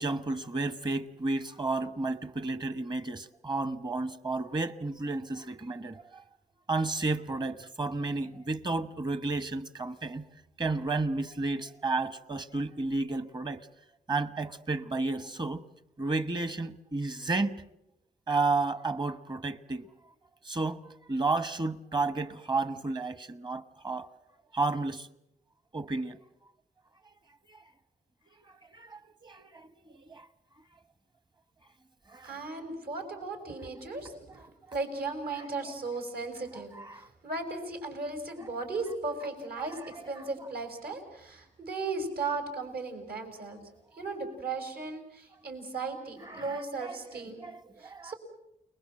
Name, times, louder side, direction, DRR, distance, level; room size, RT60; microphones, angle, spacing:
voice 1, 0.0-6.2 6.7-10.3 10.6-13.6 14.1-15.6 16.0-17.6 18.3-19.9 20.4-24.1 24.5-25.1 25.7-26.2 27.5-27.6 28.7-30.3 32.1-32.4 36.3-36.4 36.7-37.1 39.6-40.3 46.2-48.1, right 3 dB, 25° right, 1.1 m, -32 dB
voice 2, 32.2-34.4 34.7-43.6 44.0-47.5 47.8-48.1, right 3 dB, 70° right, 5.8 m, -36 dB
29.5 x 20.0 x 7.7 m
wide cardioid pair, 135°, 16 cm